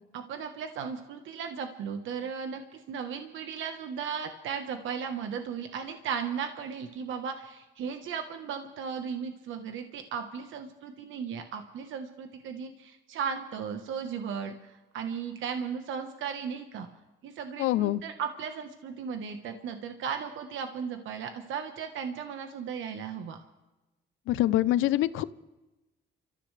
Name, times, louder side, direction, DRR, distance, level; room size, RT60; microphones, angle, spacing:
voice 1, 0.1-16.9 17.2-23.4, right 7 dB, 80° right, 6 dB, 1.3 m, -36 dB
voice 2, 17.6-18.0 24.3-25.2, left 14 dB, 90° left, 17 dB, 0.6 m, -25 dB
29.5 x 14.0 x 3.3 m, 1.1 s
cardioid pair, 90°, 20 cm